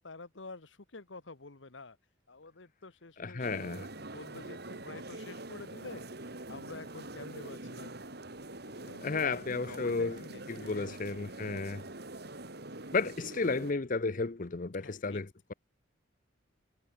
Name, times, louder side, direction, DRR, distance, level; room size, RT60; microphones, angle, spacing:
voice 1, 0.0-2.0 2.3-3.5 3.9-6.0 6.5-7.9 8.6-11.0 14.8-15.2, left 3 dB, 75° left, 1.4 m, -48 dB
voice 2, 3.2-3.9 9.0-10.2 10.5-11.8 12.9-15.5, left 4 dB, 45° left, 0.7 m, -33 dB
sound 1, 3.4-13.7, right 2 dB, 55° right, 3.2 m, -45 dB
head